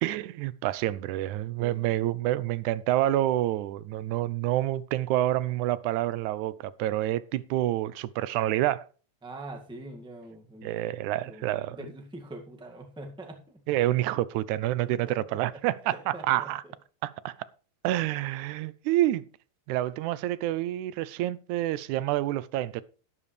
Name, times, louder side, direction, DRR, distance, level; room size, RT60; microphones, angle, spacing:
voice 1, 0.0-8.8 10.6-11.8 13.7-16.6 17.0-17.4 17.8-19.3 19.7-22.8, right 14 dB, 85° right, 2.1 m, -28 dB
voice 2, 1.6-2.0 9.2-10.7 11.0-13.6 14.8-15.6 15.9-16.7, right 1 dB, 5° right, 1.1 m, -44 dB
12.0 x 11.0 x 3.2 m
omnidirectional pair, 3.4 m